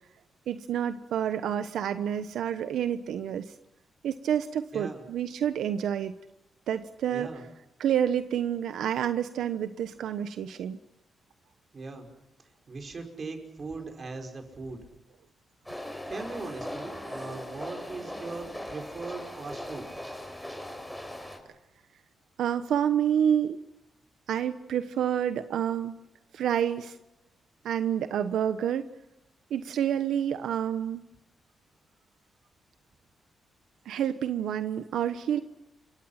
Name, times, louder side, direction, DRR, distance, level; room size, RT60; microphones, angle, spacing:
voice 1, 0.5-3.5 4.0-6.1 6.7-7.3 7.8-10.8 22.4-23.6 24.3-26.0 26.3-27.0 27.6-28.9 29.5-31.1 33.8-35.4, right 9 dB, 90° right, 10 dB, 1.1 m, -28 dB
voice 2, 4.7-5.1 7.1-7.5 11.7-12.1 12.4-14.8 16.1-19.9, right 3 dB, 40° right, 4 dB, 5.5 m, -39 dB
sound 1, 15.7-21.4, left 1 dB, 5° left, 5.9 m, -39 dB
29.0 x 24.5 x 5.8 m, 0.95 s
cardioid pair, 115°, 0 cm